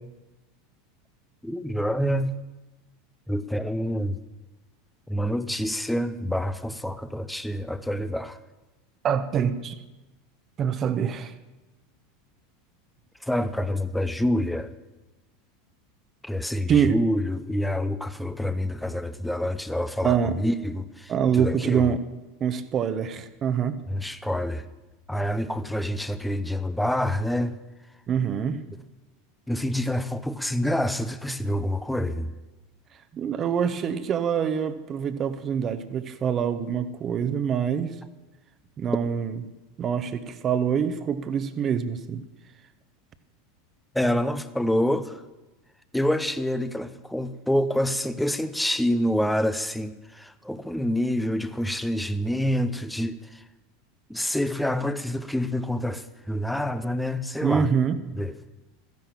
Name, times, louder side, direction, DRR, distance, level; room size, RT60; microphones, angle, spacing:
voice 1, 1.4-2.4 3.3-4.2 5.1-8.4 13.2-14.7 16.2-21.9 23.9-24.7 25.1-27.5 29.5-32.3 43.9-45.2 45.9-53.4 54.1-57.7 58.2-58.3, left 1 dB, 5° left, 0.9 m, -27 dB
voice 2, 9.0-9.8 10.6-11.3 16.7-17.0 20.0-20.4 21.1-22.0 22.4-23.8 28.1-28.6 33.1-38.0 38.8-39.4 39.8-42.2 57.4-58.0, right 7 dB, 35° right, 1.2 m, -25 dB
14.5 x 10.5 x 7.4 m
figure-of-eight pair, 80°, 0 cm